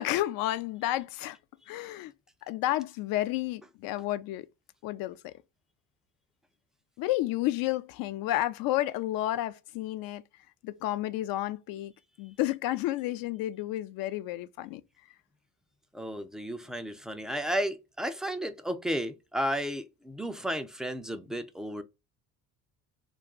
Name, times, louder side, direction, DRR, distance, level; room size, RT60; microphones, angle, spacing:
voice 1, 0.0-1.4 1.7-2.1 2.5-4.5 4.8-5.3 7.0-10.2 10.6-11.9 12.2-14.8, left 15 dB, 60° left, 0.5 m, -31 dB
voice 2, 15.9-21.8, equal, ahead, 0.3 m, -33 dB
2.3 x 2.2 x 3.6 m
supercardioid pair, 80°, 39 cm